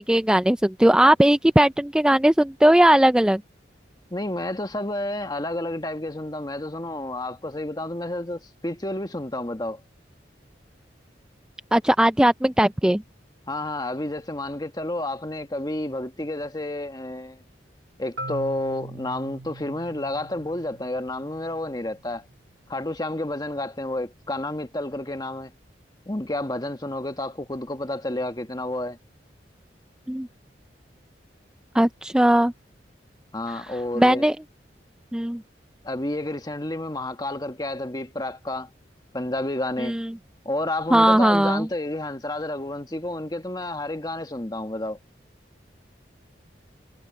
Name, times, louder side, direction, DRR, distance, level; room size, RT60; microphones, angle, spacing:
voice 1, 0.0-3.4 11.7-13.0 30.1-30.3 31.7-32.5 34.0-34.4 35.1-35.4 39.8-40.1 40.9-41.7, right 1 dB, 5° right, 0.3 m, -18 dB
voice 2, 4.1-9.8 13.5-17.4 18.0-22.3 22.7-25.5 26.1-29.0 33.3-34.2 35.8-38.7 39.1-40.0 40.4-45.0, left 1 dB, 20° left, 1.4 m, -30 dB
Marimba xylophone, 18.2-22.0, right 2 dB, 75° right, 1.3 m, -40 dB
head